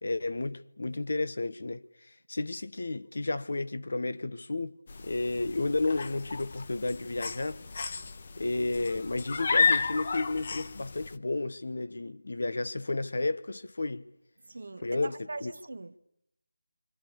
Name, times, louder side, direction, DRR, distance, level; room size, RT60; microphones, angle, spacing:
voice 1, 0.0-1.8 2.3-4.8 5.0-7.6 8.4-14.0 14.8-15.5, left 2 dB, 65° left, 1.2 m, -32 dB
sound 1, 4.9-11.2, left 5 dB, 45° left, 1.1 m, -32 dB
voice 2, 14.5-16.0, right 2 dB, 65° right, 1.4 m, -41 dB
28.0 x 25.5 x 6.9 m
figure-of-eight pair, 165°, 0 cm